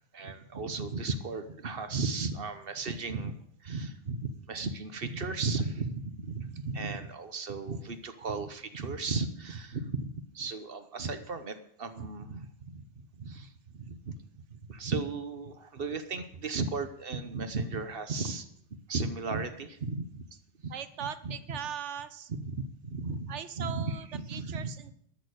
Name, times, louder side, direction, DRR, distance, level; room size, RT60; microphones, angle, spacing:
voice 1, 0.1-3.3 3.6-20.3 20.6-20.7 21.0-21.3 22.3-24.7, right 4 dB, 55° right, 10 dB, 1.2 m, -35 dB
voice 2, 20.7-22.3 23.3-24.9, right 8 dB, 80° right, 13 dB, 1.1 m, -39 dB
13.0 x 6.7 x 8.0 m, 0.69 s
omnidirectional pair, 1.2 m